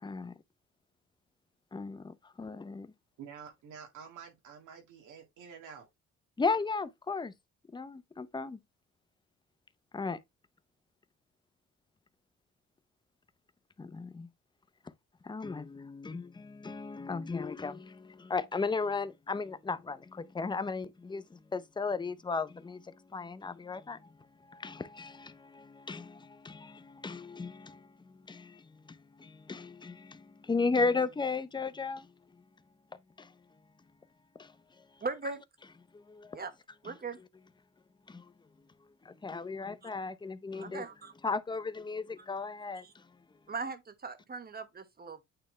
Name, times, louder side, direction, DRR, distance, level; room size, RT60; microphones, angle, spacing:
voice 1, 0.0-0.3 1.7-2.9 6.4-7.3 7.7-8.6 9.9-10.2 13.8-14.3 15.2-32.1 33.2-33.4 34.3-35.0 35.9-36.4 36.8-36.9 38.1-38.3 39.0-40.9 41.2-43.1, left 4 dB, 15° left, 0.6 m, -36 dB
voice 2, 3.2-5.9, right 7 dB, 80° right, 2.0 m, -49 dB
voice 3, 35.0-35.4 36.3-36.5 36.8-37.2 40.5-41.1 42.8-42.9 43.5-45.2, right 4 dB, 30° right, 1.2 m, -39 dB
8.8 x 3.4 x 3.2 m
cardioid pair, 90°, 30 cm